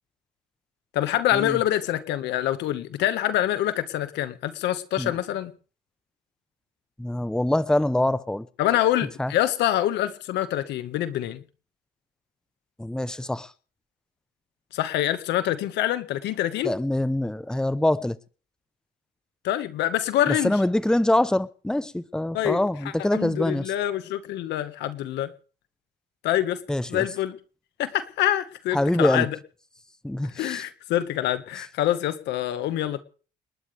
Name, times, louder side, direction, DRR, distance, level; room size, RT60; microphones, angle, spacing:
voice 1, 0.9-5.5 8.6-11.4 14.7-16.7 19.4-20.6 22.3-22.6 23.1-25.3 26.2-26.6 26.9-27.4 27.8-29.4 30.2-33.0, left 12 dB, 85° left, 1.7 m, -25 dB
voice 2, 7.0-8.5 9.2-9.3 12.8-13.5 16.6-18.2 20.3-23.7 26.7-27.0 28.7-29.3 30.0-30.6, left 1 dB, 5° left, 0.9 m, -24 dB
29.5 x 12.0 x 3.5 m
cardioid pair, 105°, 18 cm